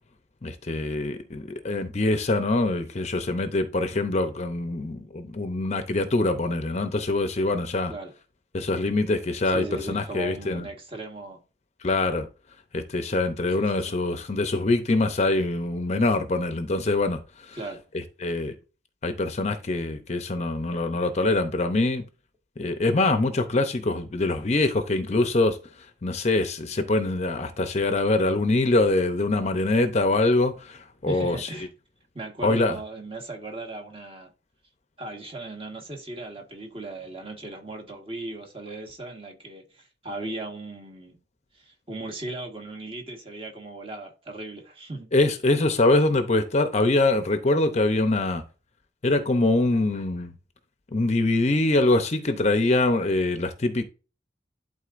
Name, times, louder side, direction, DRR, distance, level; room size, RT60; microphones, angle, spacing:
voice 1, 0.4-7.9 8.5-10.7 11.8-12.3 12.7-17.6 18.2-18.5 19.0-22.0 22.6-25.6 26.0-31.5 32.4-32.8 45.1-48.4 49.0-50.3 50.9-53.8, left 2 dB, 35° left, 0.6 m, -24 dB
voice 2, 9.4-11.4 13.5-13.9 17.5-17.8 31.1-31.7 32.1-34.3 35.0-41.2 41.5-45.1, right 2 dB, 30° right, 1.5 m, -37 dB
11.5 x 3.9 x 2.5 m
head